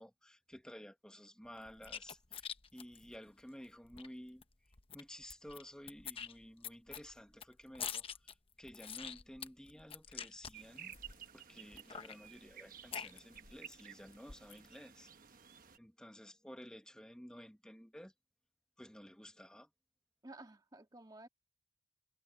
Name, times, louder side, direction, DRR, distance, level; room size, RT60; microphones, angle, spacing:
voice 1, 0.0-2.4 2.7-4.4 4.9-10.9 11.3-15.1 15.8-18.1 18.8-19.7, equal, 5° left, 1.2 m, -53 dB
sound 1, 1.6-4.1 4.4-4.5 4.7-5.6 5.9-11.3 11.7-13.7 14.1-14.7, left 7 dB, 30° left, 0.9 m, -46 dB
sound 2, 10.5-15.8, right 9 dB, 50° right, 1.2 m, -55 dB
voice 2, 20.2-21.3, right 2 dB, 20° right, 1.7 m, -53 dB
head